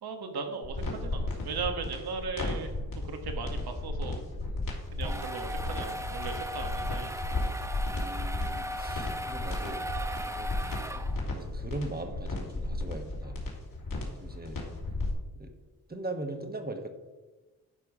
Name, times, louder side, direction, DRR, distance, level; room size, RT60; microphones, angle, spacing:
voice 1, 0.0-2.7 3.0-4.2 4.9-7.1 7.4-7.5, right 5 dB, 75° right, 5 dB, 1.4 m, -37 dB
sound 1, 0.6-15.1, left 2 dB, 60° left, 2.7 m, -34 dB
sound 2, 4.7-11.4, right 1 dB, 10° right, 0.8 m, -38 dB
voice 2, 7.9-9.8 10.2-10.5 11.3-13.4 14.2-14.6 15.4-15.5 15.9-16.9, right 2 dB, 25° right, 5 dB, 1.3 m, -40 dB
11.5 x 4.7 x 4.8 m, 1.2 s
cardioid pair, 60°, 38 cm